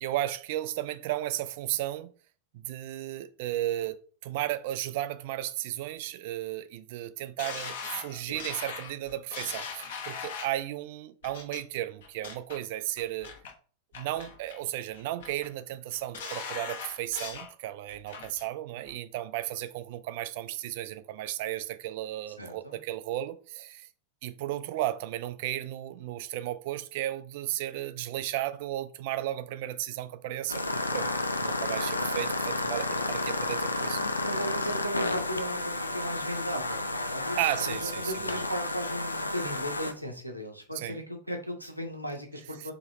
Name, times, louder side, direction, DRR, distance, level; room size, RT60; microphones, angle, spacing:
voice 1, 0.0-2.1 2.5-13.3 14.0-23.9 24.2-31.1 31.4-34.0 37.4-38.4 40.7-41.0 42.6-42.7, right 14 dB, 50° right, 0.3 m, -34 dB
sound 1, 7.4-10.6 11.2-11.6 12.0-12.6 13.0-13.5 13.9-14.6 14.9-15.5 15.9-17.5 17.9-18.5 18.9-19.0, left 5 dB, 60° left, 0.7 m, -40 dB
voice 2, 22.4-22.8 33.9-37.4 37.6-42.7, equal, 90° right, 0.6 m, -37 dB
sound 2, 30.5-39.9, left 2 dB, 80° left, 0.3 m, -31 dB
2.8 x 2.8 x 4.2 m
figure-of-eight pair, 90°, 0 cm